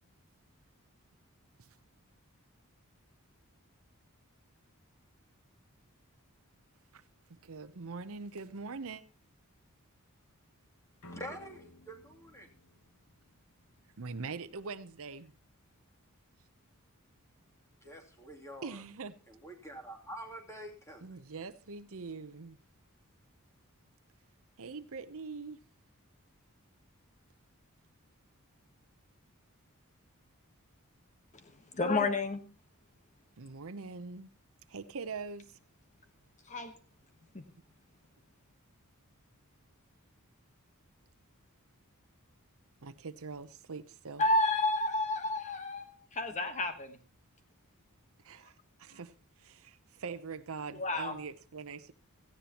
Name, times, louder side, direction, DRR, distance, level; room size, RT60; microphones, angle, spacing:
voice 1, 7.3-9.0 14.0-15.3 18.6-19.1 21.0-22.6 24.6-25.6 33.4-34.3 34.7-35.6 42.8-44.2 48.2-49.1 49.4-51.9, right 4 dB, 65° right, 13 dB, 0.8 m, -43 dB
sound 1, 11.0-13.9, left 1 dB, 75° left, 2.1 m, -55 dB
voice 2, 11.1-12.5 17.8-18.8 19.3-21.2, equal, 15° left, 1 dB, 2.9 m, -46 dB
voice 3, 31.7-32.4 36.5-36.8 37.3-37.4 44.2-47.0 50.8-51.2, left 2 dB, 35° left, 8 dB, 1.2 m, -30 dB
17.5 x 14.5 x 3.0 m, 0.32 s
head